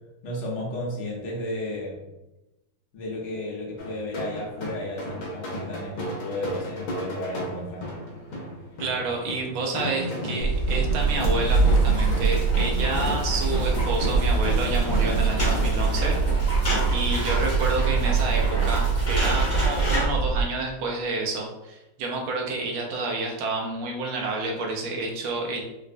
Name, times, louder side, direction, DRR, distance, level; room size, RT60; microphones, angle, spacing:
voice 1, 0.2-2.0 2.9-7.8, left 1 dB, 65° left, -4 dB, 1.3 m, -33 dB
sound 1, 3.8-15.7, equal, 90° left, 1.6 m, -34 dB
voice 2, 8.8-16.5 16.9-25.6, right 2 dB, 90° right, 0 dB, 1.5 m, -29 dB
sound 2, 10.4-20.4, right 4 dB, 60° right, 1.4 m, -23 dB
sound 3, 10.9-20.0, equal, 15° left, 0.5 m, -33 dB
4.2 x 2.1 x 2.4 m, 0.98 s
omnidirectional pair, 2.2 m